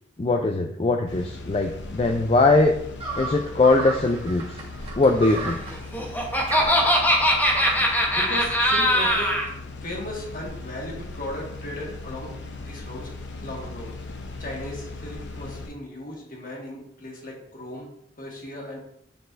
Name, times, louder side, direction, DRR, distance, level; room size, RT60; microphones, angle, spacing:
voice 1, 0.2-2.8 3.2-4.4 4.9-5.6, left 2 dB, 30° left, 3 dB, 0.4 m, -21 dB
sound 1, 1.1-15.7, left 2 dB, 75° left, 0.8 m, -38 dB
sound 2, 3.0-8.0, right 3 dB, 30° right, 1.4 m, -34 dB
Laughter, 5.7-9.5, equal, 10° left, 0.9 m, -21 dB
voice 2, 8.1-9.4 9.8-13.1 13.4-13.9 14.4-17.9 18.2-18.8, left 1 dB, 50° left, -1 dB, 1.6 m, -36 dB
9.4 x 4.0 x 2.5 m, 0.72 s
head